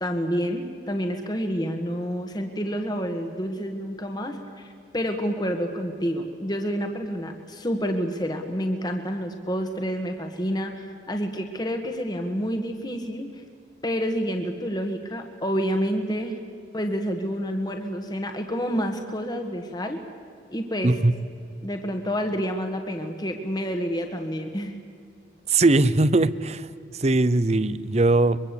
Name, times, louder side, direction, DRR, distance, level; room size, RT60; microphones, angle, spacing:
voice 1, 0.0-13.3 13.8-16.4 16.7-20.0 20.5-21.0 21.6-24.7, equal, 20° left, 5 dB, 1.6 m, -28 dB
voice 2, 25.5-26.7 27.0-28.4, right 2 dB, 35° right, 17 dB, 0.7 m, -20 dB
24.0 x 22.5 x 8.4 m, 2.3 s
head